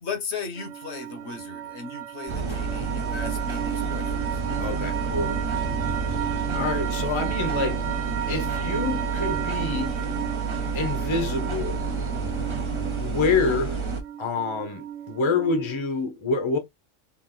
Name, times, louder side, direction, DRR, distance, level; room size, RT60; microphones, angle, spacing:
voice 1, 0.0-4.1 5.9-6.1, left 5 dB, 65° left, 1.1 m, -36 dB
sound 1, 0.6-15.9, right 10 dB, 85° right, 1.0 m, -34 dB
sound 2, 2.3-14.0, right 4 dB, 35° right, 0.4 m, -29 dB
voice 2, 4.6-5.4 6.5-7.8 8.3-10.0 10.7-11.8 13.0-13.8 14.2-16.6, left 4 dB, 30° left, 0.6 m, -27 dB
3.4 x 2.5 x 3.7 m
omnidirectional pair, 1.3 m